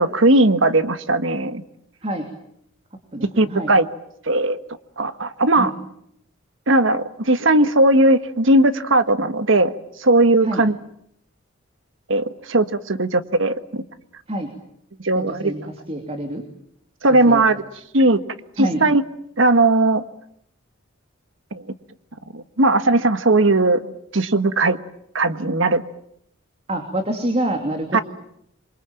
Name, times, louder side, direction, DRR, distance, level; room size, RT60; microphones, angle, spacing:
voice 1, 0.0-1.6 3.4-3.9 4.3-4.6 5.0-5.7 6.7-9.7 10.0-10.7 12.1-13.8 15.0-15.5 17.0-17.6 17.9-18.2 18.6-19.0 19.4-20.0 21.5-21.6 22.3-24.8 25.1-25.8 27.9-28.0, right 2 dB, 65° right, 11 dB, 1.5 m, -18 dB
voice 2, 3.1-3.7 5.6-5.7 10.4-10.6 14.3-14.5 15.1-15.6 15.9-16.4 17.3-17.4 18.6-18.8 26.7-28.0, right 1 dB, 30° right, 5 dB, 3.0 m, -26 dB
27.5 x 23.5 x 9.0 m, 0.74 s
head